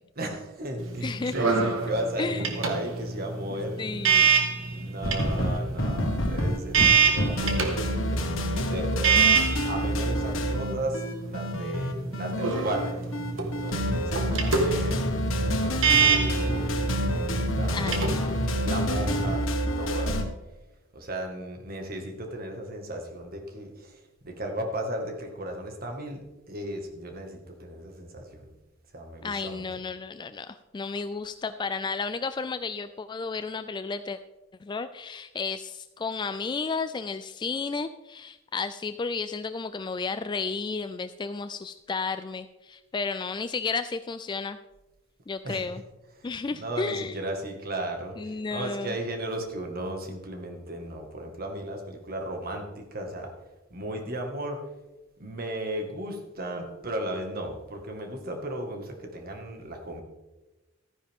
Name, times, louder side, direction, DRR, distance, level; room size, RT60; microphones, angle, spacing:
voice 1, 0.2-3.9 4.7-8.2 8.5-13.0 13.4-15.0 15.4-16.7 17.0-18.1 18.6-19.5 19.8-20.2 20.9-26.2 26.5-28.5 28.9-29.7 45.4-45.7 46.1-53.3 53.7-54.6 55.2-60.0, right 1 dB, 50° right, 3 dB, 1.8 m, -35 dB
sound 1, 0.8-19.3, right 5 dB, 80° right, 1.6 m, -27 dB
voice 2, 1.0-1.3 2.2-2.4 3.5-4.3 17.7-18.5 29.2-34.2 34.6-44.6 45.3-45.8 46.2-47.2 48.2-48.9, left 4 dB, 20° left, 11 dB, 0.3 m, -32 dB
sound 2, 5.0-20.2, equal, 85° left, 1.6 m, -28 dB
14.0 x 10.0 x 3.6 m, 1.1 s
head